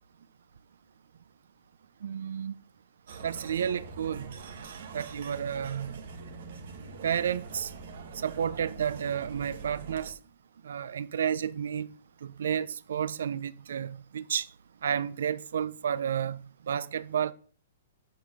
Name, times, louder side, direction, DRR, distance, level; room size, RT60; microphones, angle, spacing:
voice 1, 2.0-2.5 3.2-4.3 4.9-6.0 7.0-7.7 8.1-10.1 10.6-11.9 12.2-14.5 14.8-16.4 16.7-17.3, right 8 dB, 65° right, 0.5 m, -31 dB
sound 1, 3.1-10.1, right 4 dB, 50° right, 1.6 m, -44 dB
8.7 x 5.4 x 6.0 m
hypercardioid pair, 180°, 0 cm